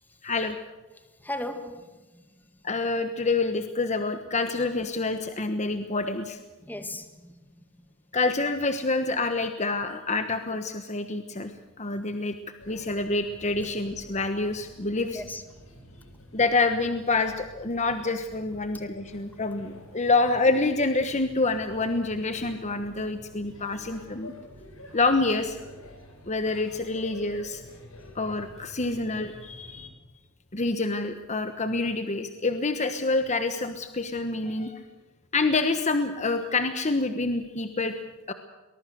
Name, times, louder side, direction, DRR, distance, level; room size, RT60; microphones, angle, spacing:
voice 1, 0.2-0.6 2.6-6.4 8.1-11.5 11.8-12.3 12.7-15.2 16.3-24.3 24.9-25.6 26.3-27.6 28.1-29.9 30.5-34.8 35.3-37.9 38.3-38.4, left 3 dB, 30° left, 1.2 m, -27 dB
voice 2, 0.9-2.5 6.6-7.5 15.0-15.6, left 1 dB, 10° left, 1.8 m, -38 dB
Male speech man speaking / Child speech kid speaking / Chatter, 12.6-29.9, left 1 dB, 70° left, 5.2 m, -49 dB
23.0 x 20.5 x 6.4 m
head